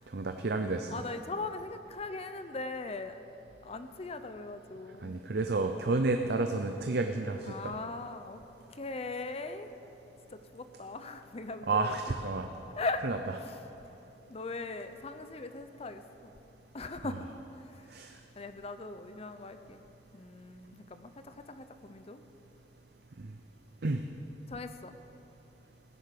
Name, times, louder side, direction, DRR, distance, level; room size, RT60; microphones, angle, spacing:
voice 1, 0.1-0.9 5.0-7.8 11.7-12.5 13.0-13.2 17.9-18.1 23.2-23.3 23.8-24.0, right 3 dB, 60° right, 6 dB, 0.6 m, -30 dB
voice 2, 0.9-3.2 3.6-5.2 7.4-8.4 8.7-9.7 10.3-11.9 12.7-13.0 13.3-13.6 14.3-16.3 16.7-17.9 18.4-19.8 20.1-22.2 24.5-24.9, left 3 dB, 35° left, 9 dB, 0.6 m, -40 dB
16.5 x 10.5 x 6.7 m, 3.0 s
head